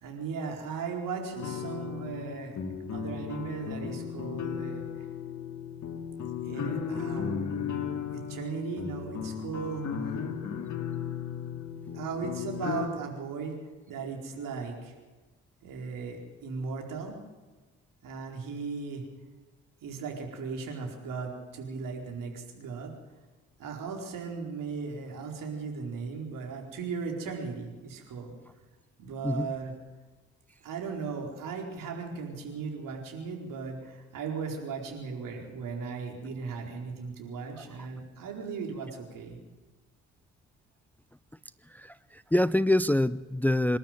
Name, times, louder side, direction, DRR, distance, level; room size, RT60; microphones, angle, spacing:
voice 1, 0.0-2.6 2.9-5.1 6.4-7.5 8.1-9.9 11.9-14.9 15.6-17.2 18.0-19.0 19.8-22.9 23.6-28.3 29.0-29.7 30.6-39.4, right 5 dB, 65° right, 1 dB, 4.5 m, -37 dB
sound 1, 1.4-12.9, left 7 dB, 55° left, 2.6 m, -35 dB
voice 2, 41.7-43.8, left 1 dB, 5° left, 17 dB, 0.6 m, -26 dB
26.5 x 12.5 x 9.0 m, 1.3 s
hypercardioid pair, 40°, 35 cm